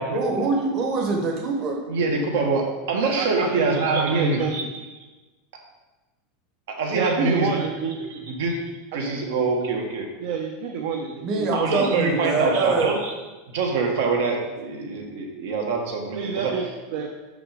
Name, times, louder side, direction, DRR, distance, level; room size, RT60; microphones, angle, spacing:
voice 1, 0.1-1.8 11.2-12.9, right 3 dB, 35° right, 1 dB, 1.1 m, -24 dB
voice 2, 1.9-4.6 6.8-7.6 8.3-8.6 8.9-10.1 11.5-13.1 13.5-16.5, right 3 dB, 80° right, 1 dB, 1.4 m, -24 dB
voice 3, 3.2-4.7 6.9-8.1 9.0-9.2 10.2-11.5 16.1-16.6 16.9-17.2, right 6 dB, 65° right, 2 dB, 0.7 m, -28 dB
6.0 x 5.2 x 5.0 m, 1.2 s
supercardioid pair, 170°, 0 cm